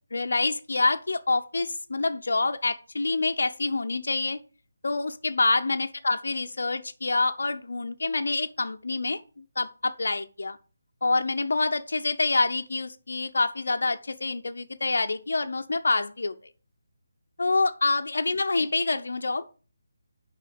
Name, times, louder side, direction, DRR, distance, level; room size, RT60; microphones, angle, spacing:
voice 1, 0.1-4.4 4.8-10.6 11.0-16.3 17.4-19.4, left 3 dB, 60° left, 0.6 m, -27 dB
8.2 x 5.5 x 6.8 m
figure-of-eight pair, 150°, 0 cm